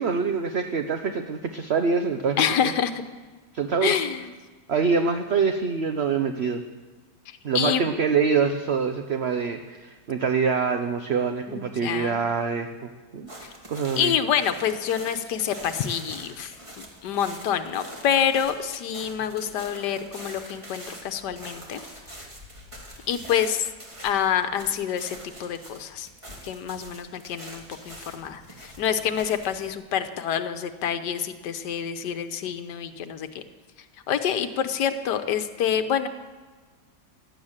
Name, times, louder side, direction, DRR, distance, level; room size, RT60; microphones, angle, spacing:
voice 1, 0.0-2.4 3.5-4.0 4.7-6.6 7.4-12.7 13.1-13.3 13.7-14.1, right 5 dB, 50° right, 7 dB, 0.9 m, -25 dB
voice 2, 2.4-3.0 3.8-4.3 7.3-7.8 11.5-12.2 13.4-13.5 14.0-21.8 23.1-23.7 24.0-26.1 26.4-33.4 34.1-36.1, left 8 dB, 80° left, 9 dB, 1.5 m, -27 dB
sound 1, 13.3-29.7, right 1 dB, 20° right, 2.4 m, -44 dB
16.0 x 11.5 x 7.4 m, 1.4 s
omnidirectional pair, 1.8 m